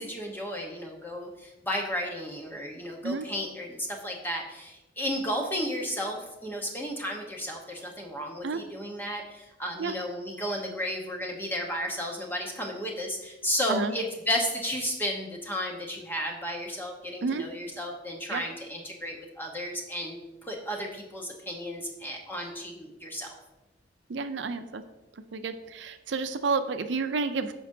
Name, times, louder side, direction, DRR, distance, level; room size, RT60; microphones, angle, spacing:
voice 1, 0.0-23.3, equal, 10° left, 0 dB, 1.0 m, -33 dB
voice 2, 24.1-24.8 25.3-27.5, right 4 dB, 70° right, 9 dB, 0.5 m, -30 dB
13.5 x 5.2 x 2.7 m, 1.0 s
head